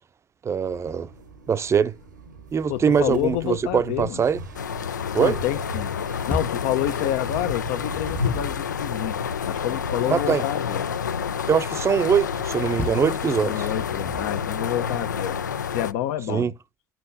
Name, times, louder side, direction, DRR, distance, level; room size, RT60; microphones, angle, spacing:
voice 1, 0.4-1.1 1.5-1.9 2.5-4.4 5.1-5.4 10.1-10.4 11.5-13.7 16.3-16.5, right 7 dB, 30° right, 0.6 m, -22 dB
sound 1, 0.6-10.2, left 3 dB, 90° right, 1.3 m, -37 dB
voice 2, 2.7-4.2 5.2-5.9 6.3-9.1 9.5-10.9 13.4-15.4 15.6-16.5, left 13 dB, 65° left, 0.8 m, -28 dB
sound 2, 4.5-15.9, left 7 dB, 85° left, 0.4 m, -29 dB
sound 3, 6.3-6.7 7.6-8.6 12.8-13.2 13.7-14.5, left 2 dB, 15° left, 0.8 m, -33 dB
13.0 x 5.9 x 2.6 m
figure-of-eight pair, 65°, 10 cm